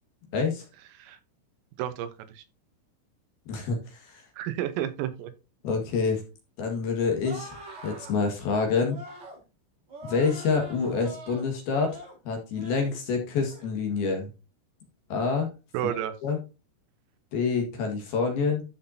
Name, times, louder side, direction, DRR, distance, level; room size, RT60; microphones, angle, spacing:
voice 1, 0.3-0.7 3.5-4.2 5.6-6.2 6.6-7.6 7.8-9.0 10.0-14.3 15.1-15.5 15.8-15.9 16.2-16.4 17.3-18.6, left 5 dB, 60° left, 3 dB, 3.2 m, -27 dB
voice 2, 1.8-2.4 4.4-5.3 15.7-16.1, right 11 dB, 80° right, 10 dB, 3.7 m, -31 dB
sound 1, 7.2-8.1 8.9-9.4 9.9-11.5 11.8-12.2 12.5-13.0 13.4-13.7, right 1 dB, 40° right, 4.4 m, -44 dB
13.0 x 5.9 x 2.7 m, 0.30 s
omnidirectional pair, 5.9 m